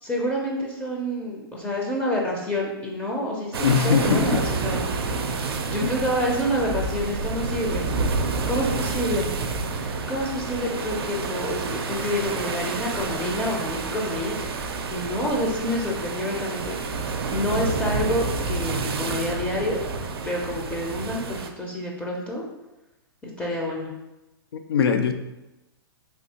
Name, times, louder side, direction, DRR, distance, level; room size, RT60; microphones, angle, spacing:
voice 1, 0.0-4.9 5.7-7.8 8.5-9.3 10.1-14.4 14.9-19.8 20.2-22.4 23.2-23.9, left 1 dB, 10° left, -2 dB, 0.5 m, -28 dB
sound 1, 3.5-21.5, right 4 dB, 85° right, 0.4 m, -29 dB
voice 2, 3.6-4.4 5.8-5.9 24.7-25.1, left 6 dB, 85° left, 7 dB, 0.4 m, -21 dB
3.4 x 2.6 x 2.8 m, 0.99 s
hypercardioid pair, 130°, 13 cm